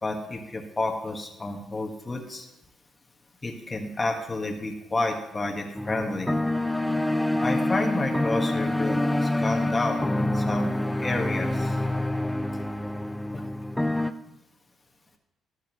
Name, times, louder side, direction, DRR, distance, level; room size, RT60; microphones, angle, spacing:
voice 1, 0.0-2.5 3.4-6.3 7.4-10.7 11.0-11.7 13.3-13.4, left 2 dB, 25° left, 2 dB, 1.7 m, -30 dB
sound 1, 5.8-14.1, left 1 dB, 5° left, 0.5 m, -26 dB
12.0 x 11.5 x 3.1 m, 0.89 s
cardioid pair, 90°, 0 cm